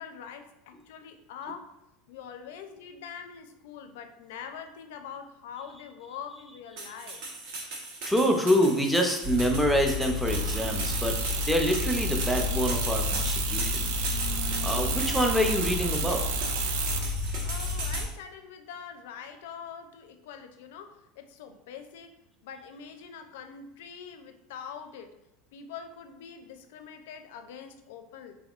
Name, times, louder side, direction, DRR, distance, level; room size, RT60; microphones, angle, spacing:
voice 1, 0.0-1.7 2.1-7.2 17.4-22.1 22.4-25.1 25.5-28.4, left 7 dB, 75° left, 7 dB, 0.4 m, -44 dB
sound 1, 6.8-18.1, right 3 dB, 65° right, 1.1 m, -37 dB
voice 2, 8.0-13.9 14.6-16.2, equal, ahead, 2 dB, 0.4 m, -26 dB
sound 2, 9.2-18.0, left 5 dB, 40° right, 0.8 m, -32 dB
sound 3, 10.3-17.0, right 7 dB, 85° right, 0.4 m, -33 dB
3.7 x 3.4 x 2.4 m, 0.89 s
supercardioid pair, 170°, 0 cm